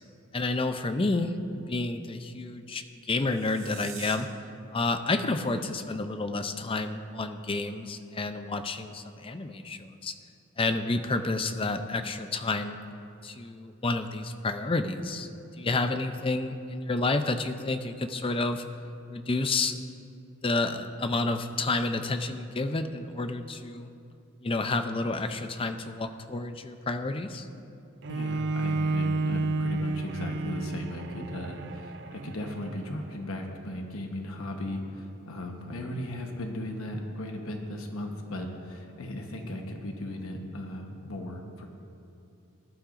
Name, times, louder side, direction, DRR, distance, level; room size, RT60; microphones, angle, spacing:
voice 1, 0.3-4.3 4.7-10.1 10.6-12.8 13.2-18.6 19.1-19.8 20.4-23.9 24.4-27.5, left 3 dB, 25° left, 8 dB, 0.5 m, -30 dB
sound 1, 3.2-4.1, right 8 dB, 70° right, 1.9 m, -44 dB
Bowed string instrument, 28.0-33.2, right 2 dB, 50° right, 0.4 m, -31 dB
voice 2, 28.1-41.7, left 1 dB, 75° left, 2 dB, 1.1 m, -36 dB
19.0 x 11.5 x 2.6 m, 2.6 s
head